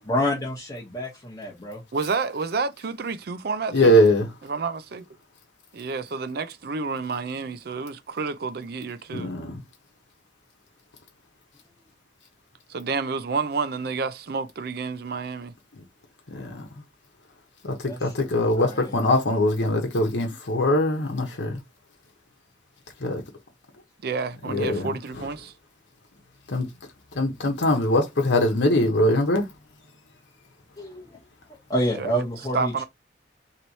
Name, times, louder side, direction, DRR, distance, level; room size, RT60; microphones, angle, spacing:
voice 1, 0.0-1.8 17.9-18.1 18.6-18.9 30.8-31.2 31.7-32.8, equal, 20° left, 1.1 m, -28 dB
voice 2, 1.9-4.0 4.5-5.0 5.7-9.3 12.7-15.5 24.0-25.5 32.0-32.2 32.5-32.8, right 4 dB, 60° right, 0.5 m, -29 dB
voice 3, 3.7-4.3 9.1-9.6 15.7-15.8 16.3-16.7 17.6-21.6 23.0-23.2 24.4-25.3 26.5-26.7 27.1-29.5, left 1 dB, 85° left, 1.0 m, -22 dB
3.1 x 2.9 x 4.0 m
head